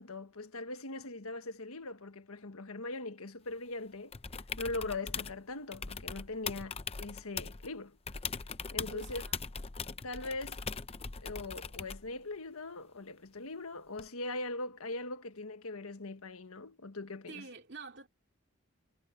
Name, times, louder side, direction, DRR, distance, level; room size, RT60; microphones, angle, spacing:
voice 1, 0.0-4.1 4.6-8.0 8.7-9.2 10.0-10.6 11.2-17.4, left 2 dB, 85° left, 1.5 m, -41 dB
sound 1, 4.1-5.4 5.7-7.7 8.1-12.1 14.0-14.1, left 5 dB, 30° left, 0.7 m, -40 dB
voice 2, 8.9-9.4 17.3-18.1, right 4 dB, 55° right, 2.7 m, -47 dB
head